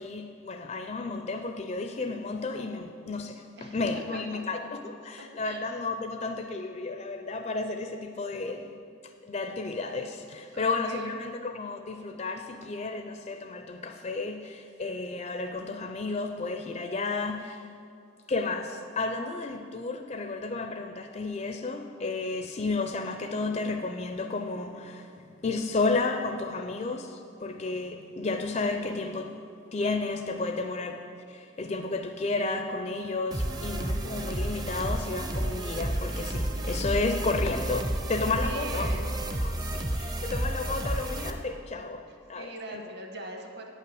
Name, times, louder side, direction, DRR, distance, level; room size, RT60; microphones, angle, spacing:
voice 1, 0.0-8.8 9.0-17.7 18.3-29.4 29.7-38.9 39.4-42.8, left 3 dB, 30° left, 5 dB, 0.4 m, -32 dB
voice 2, 4.1-4.4 5.2-5.6 10.5-11.1 33.0-33.6 38.4-39.1 42.3-43.7, right 1 dB, 50° right, 2 dB, 1.2 m, -42 dB
sound 1, 33.3-41.3, right 1 dB, 20° right, 0.5 m, -31 dB
8.9 x 5.7 x 7.7 m, 2.4 s
head